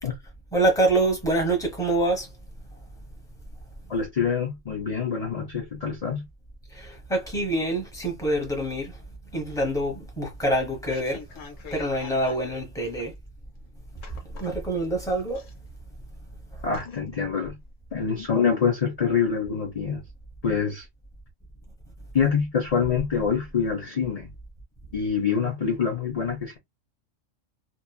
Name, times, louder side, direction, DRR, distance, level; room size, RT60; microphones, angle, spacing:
voice 1, 0.5-2.3 6.7-8.9 9.3-11.2 11.7-13.1 14.4-15.4, right 1 dB, 5° left, 1.0 m, -25 dB
voice 2, 3.9-6.3 16.6-17.6 17.9-20.0 20.4-20.8 22.1-24.3 24.9-26.6, left 6 dB, 40° left, 0.6 m, -25 dB
sound 1, 10.8-12.6 12.9-13.0 14.0-14.9 15.3-16.0 16.3-16.4 16.7-17.2 17.6-17.7, left 5 dB, 80° left, 1.1 m, -44 dB
3.0 x 2.4 x 2.2 m
omnidirectional pair, 1.3 m